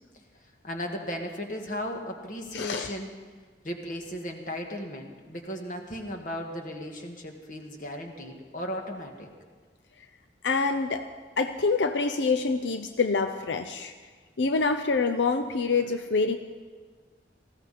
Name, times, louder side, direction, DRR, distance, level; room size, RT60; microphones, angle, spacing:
voice 1, 0.6-3.1 3.6-9.3, equal, 45° left, 2 dB, 1.9 m, -36 dB
voice 2, 2.5-2.9 10.4-11.1 11.4-13.9 14.4-16.4, left 4 dB, 85° left, 7 dB, 0.7 m, -26 dB
19.5 x 15.5 x 4.3 m, 1.5 s
head